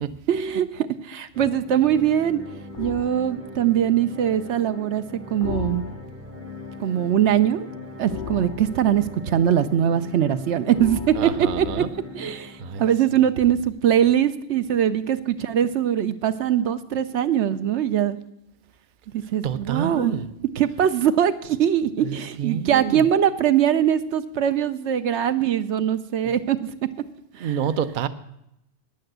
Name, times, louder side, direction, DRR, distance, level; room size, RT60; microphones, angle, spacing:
voice 1, 0.3-2.4 2.8-5.0 5.3-5.9 6.8-7.7 8.0-11.8 12.1-18.2 19.1-20.2 20.6-26.6 27.3-27.6, right 10 dB, 75° right, 11 dB, 0.9 m, -22 dB
sound 1, 1.3-13.3, left 2 dB, 15° right, 0.6 m, -40 dB
sound 2, 2.7-3.2 5.4-6.3 8.1-9.2 10.7-12.1, left 8 dB, 55° left, 0.6 m, -35 dB
voice 2, 11.2-11.9 12.6-12.8 19.4-20.3 22.0-23.1 26.2-26.3 27.4-28.1, right 8 dB, 55° right, 12 dB, 0.7 m, -28 dB
9.8 x 8.6 x 7.9 m, 0.81 s
omnidirectional pair, 1.2 m